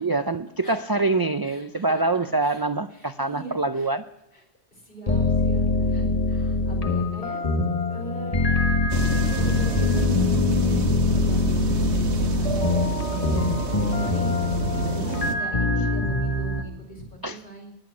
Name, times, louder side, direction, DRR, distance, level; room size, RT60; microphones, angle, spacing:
voice 1, 0.0-4.0 14.7-14.9 17.2-17.4, right 3 dB, 40° right, 10 dB, 0.3 m, -25 dB
voice 2, 0.6-1.1 1.4-2.0 2.4-2.6 2.9-3.9 4.3-4.4 4.7-7.4 7.9-13.0 13.3-14.3 14.8-17.7, right 2 dB, 55° left, 1 dB, 4.9 m, -40 dB
sound 1, 5.1-16.6, left 3 dB, 35° left, 1.5 m, -23 dB
sound 2, 8.9-15.3, right 4 dB, 85° right, 1.5 m, -29 dB
20.5 x 9.4 x 6.1 m, 0.89 s
omnidirectional pair, 1.1 m